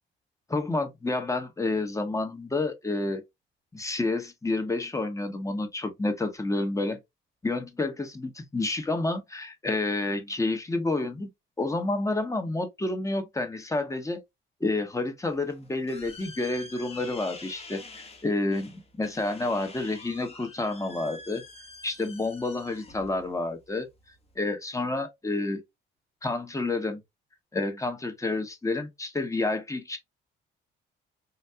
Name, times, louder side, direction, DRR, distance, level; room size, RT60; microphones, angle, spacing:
voice 1, 0.5-3.2 3.7-7.0 7.4-11.3 11.6-14.2 14.6-21.4 21.8-23.9 24.4-25.6 26.2-27.0 27.5-30.0, left 2 dB, 15° left, 1.0 m, -29 dB
sound 1, 15.2-24.3, left 3 dB, 30° left, 1.0 m, -47 dB
4.1 x 2.6 x 2.2 m
cardioid pair, 90°, 20 cm